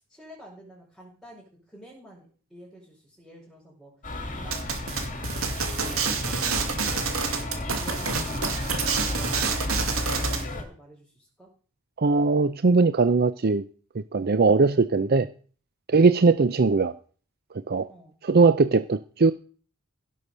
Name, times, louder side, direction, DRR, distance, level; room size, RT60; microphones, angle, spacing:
voice 1, 0.0-3.9 4.3-7.1 7.5-8.7 9.0-11.5 17.9-18.2, equal, ahead, -8 dB, 5.0 m, -49 dB
sound 1, 4.0-10.6, left 1 dB, 40° left, 2.6 m, -32 dB
sound 2, 4.5-10.4, right 5 dB, 75° right, 2.4 m, -28 dB
voice 2, 12.0-13.6 13.9-15.3 15.9-16.9 17.7-17.9 18.2-19.3, right 4 dB, 50° right, 12 dB, 0.6 m, -20 dB
16.5 x 6.5 x 6.7 m, 0.41 s
head